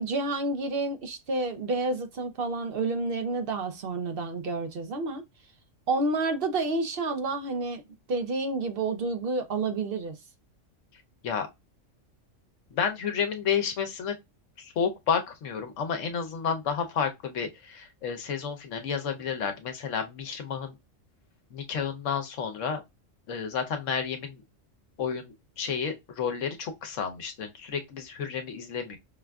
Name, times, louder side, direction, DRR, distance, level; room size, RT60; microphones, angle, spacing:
voice 1, 0.0-5.2 5.9-7.8 8.1-10.2, right 3 dB, 55° right, 0.8 m, -29 dB
voice 2, 12.7-14.1 14.6-20.8 21.5-22.8 23.3-24.4 25.0-29.0, left 7 dB, 75° left, 1.1 m, -31 dB
5.5 x 2.4 x 2.3 m
omnidirectional pair, 1.3 m